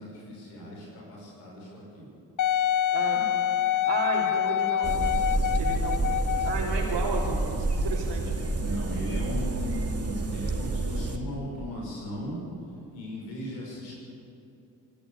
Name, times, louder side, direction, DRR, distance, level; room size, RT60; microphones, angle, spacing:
voice 1, 0.0-2.1 8.6-12.4 12.9-13.9, left 1 dB, 90° left, -4 dB, 6.4 m, -37 dB
Wind instrument woodwind instrument, 2.4-6.7 7.4-7.5, left 11 dB, 45° left, 0.6 m, -26 dB
voice 2, 2.9-3.3 3.6-5.2 5.6-6.1 6.4-8.3, right 4 dB, 65° right, -5 dB, 3.4 m, -33 dB
sound 1, 4.8-11.2, right 2 dB, 30° right, 2.4 m, -29 dB
25.5 x 12.0 x 8.7 m, 2.7 s
hypercardioid pair, 40°, 45 cm